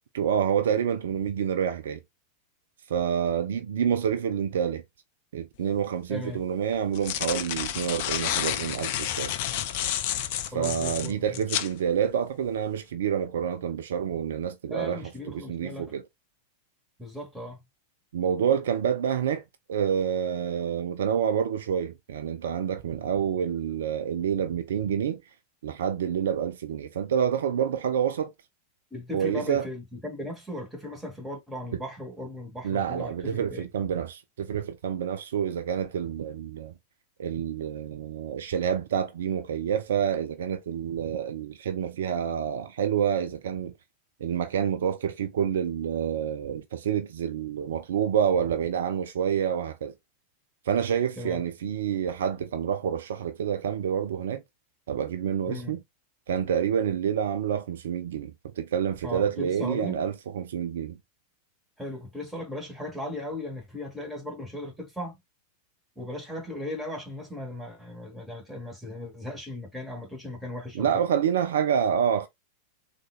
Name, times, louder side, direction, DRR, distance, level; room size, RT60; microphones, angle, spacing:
voice 1, 0.1-2.0 2.9-4.8 5.3-9.3 10.5-15.0 15.3-16.0 18.1-19.4 19.7-25.2 25.6-28.3 29.1-29.7 31.7-31.8 32.6-36.7 37.2-43.7 44.2-49.9 50.7-54.4 54.9-55.8 56.3-61.0 70.7-72.3, right 8 dB, 60° right, 0.4 m, -28 dB
sound 1, 5.7-5.8 6.7-11.7, left 11 dB, 50° left, 0.4 m, -30 dB
voice 2, 6.1-6.4 10.5-11.6 14.7-15.9 17.0-17.6 28.9-33.7 51.2-51.4 55.5-55.8 59.0-60.0 61.8-65.2 65.9-71.0, left 1 dB, 5° right, 1.5 m, -37 dB
3.6 x 2.5 x 2.4 m
figure-of-eight pair, 90°, 0 cm